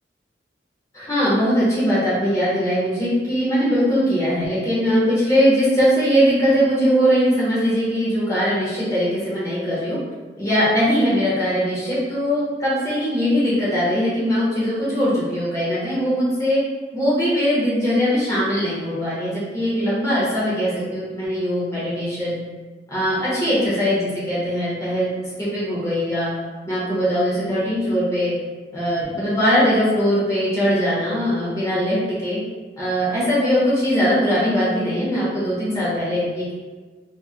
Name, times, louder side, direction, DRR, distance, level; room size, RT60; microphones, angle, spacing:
voice 1, 0.9-10.0 10.4-16.6 16.9-22.4 22.9-25.1 25.4-26.3 26.6-28.3 28.7-32.4 32.8-36.5, equal, 20° left, -9 dB, 0.9 m, -21 dB
3.1 x 2.6 x 2.4 m, 1.4 s
head